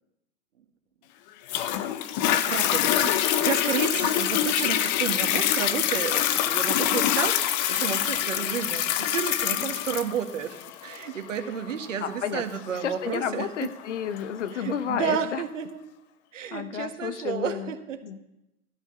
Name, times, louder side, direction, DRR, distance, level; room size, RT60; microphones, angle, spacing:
Toilet flush, 1.5-14.5 15.1-15.2, left 12 dB, 30° left, 0.7 m, -26 dB
voice 1, 2.2-13.5 14.5-15.8 16.3-18.0, right 8 dB, 60° right, 7 dB, 1.8 m, -31 dB
voice 2, 12.0-12.4 12.8-15.4 16.5-17.7 18.0-18.2, left 8 dB, 55° left, 12 dB, 1.1 m, -31 dB
13.0 x 11.5 x 5.5 m, 0.91 s
figure-of-eight pair, 110°, 44 cm